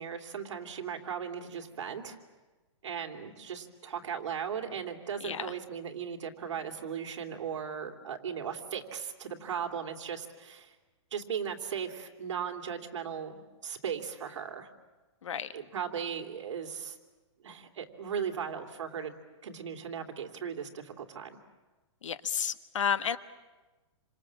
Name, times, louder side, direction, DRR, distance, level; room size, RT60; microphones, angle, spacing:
voice 1, 0.0-2.2 2.8-10.7 11.1-14.7 15.5-17.0 17.4-19.1 19.4-21.4, right 7 dB, 70° right, 4 dB, 2.9 m, -37 dB
voice 2, 5.2-5.5 15.2-15.5 22.0-23.2, left 8 dB, 85° left, 12 dB, 1.4 m, -31 dB
28.0 x 26.5 x 7.5 m, 1.2 s
hypercardioid pair, 170°, 16 cm